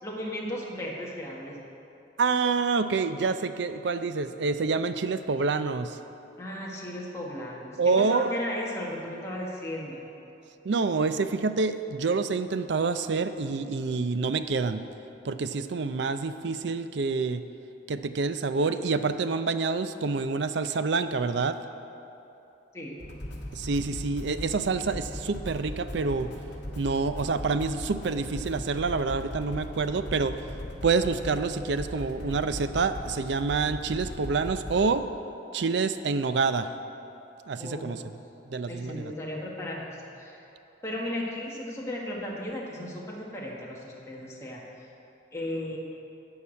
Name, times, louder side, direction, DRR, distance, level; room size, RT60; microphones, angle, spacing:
voice 1, 0.0-1.6 6.4-10.0 22.7-23.0 37.5-38.0 38.7-40.4 40.8-44.6 45.3-45.8, left 1 dB, 15° left, -4 dB, 1.4 m, -35 dB
voice 2, 2.2-6.0 7.8-8.3 10.6-14.8 15.2-17.4 17.9-21.6 23.5-26.3 26.8-30.3 30.8-35.0 35.5-36.7 37.5-38.0 38.5-39.1, right 4 dB, 65° right, 11 dB, 0.5 m, -27 dB
sound 1, 23.0-34.9, left 1 dB, 65° left, 1.5 m, -39 dB
12.5 x 4.8 x 8.6 m, 2.9 s
head